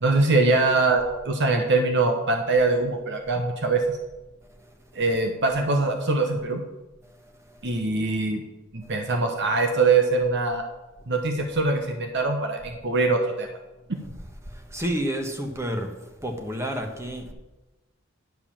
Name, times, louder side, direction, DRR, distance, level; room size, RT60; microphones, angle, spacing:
voice 1, 0.0-4.0 4.9-6.6 7.6-8.4 8.7-10.6 11.1-13.5, right 3 dB, 60° right, 1.0 m, -23 dB
voice 2, 14.5-15.9 16.2-17.3, equal, 15° right, 1.2 m, -30 dB
10.5 x 4.9 x 7.3 m
head